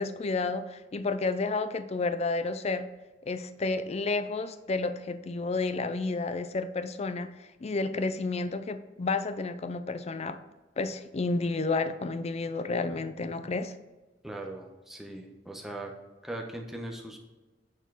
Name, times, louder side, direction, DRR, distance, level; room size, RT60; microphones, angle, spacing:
voice 1, 0.0-2.9 3.3-7.3 7.6-10.4 10.8-13.7, left 3 dB, 35° left, 10 dB, 0.5 m, -31 dB
voice 2, 14.2-15.9 16.2-17.2, right 1 dB, ahead, 1 dB, 1.0 m, -39 dB
9.2 x 4.4 x 4.0 m, 1.2 s
head